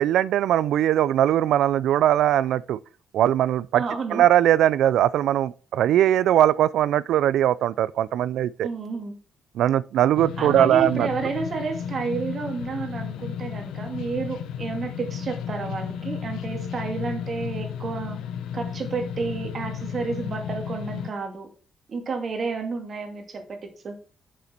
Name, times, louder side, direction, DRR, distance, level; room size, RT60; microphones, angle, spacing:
voice 1, 0.0-2.8 3.1-3.8 4.1-8.7 9.6-11.1, right 11 dB, 80° right, 0.3 m, -20 dB
voice 2, 3.8-4.2 8.6-9.2 10.4-18.2 18.5-21.5 21.9-24.0, right 4 dB, 45° right, 2.4 m, -31 dB
sound 1, 10.2-21.1, left 8 dB, 85° left, 0.8 m, -33 dB
7.2 x 6.7 x 4.3 m
cardioid pair, 90°, 0 cm